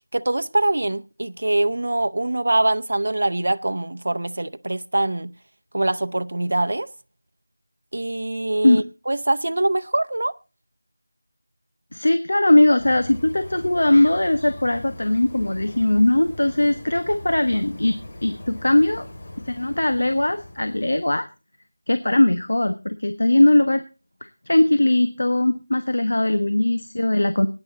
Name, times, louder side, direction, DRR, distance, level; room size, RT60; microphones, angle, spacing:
voice 1, 0.1-5.3 5.7-6.9 7.9-10.3, right 2 dB, 60° right, 0.7 m, -23 dB
voice 2, 11.9-19.1 19.5-21.2 21.9-23.8 24.5-27.5, left 1 dB, 80° left, 1.3 m, -19 dB
sound 1, 12.8-21.2, left 1 dB, 35° left, 2.4 m, -40 dB
19.5 x 9.7 x 4.0 m
figure-of-eight pair, 175°, 0 cm